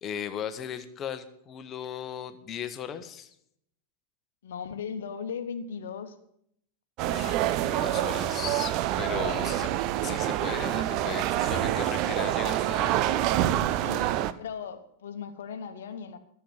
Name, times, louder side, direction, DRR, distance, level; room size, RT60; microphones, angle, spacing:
voice 1, 0.0-3.3 7.1-9.7 10.0-13.0, left 8 dB, 30° left, 11 dB, 1.1 m, -37 dB
voice 2, 4.4-6.2 9.1-9.5 13.8-14.1 14.4-16.2, left 6 dB, 60° left, 10 dB, 1.1 m, -38 dB
sound 1, 7.0-14.3, right 13 dB, 40° right, 0.6 m, -27 dB
13.0 x 7.0 x 7.9 m, 0.72 s
figure-of-eight pair, 90°, 0 cm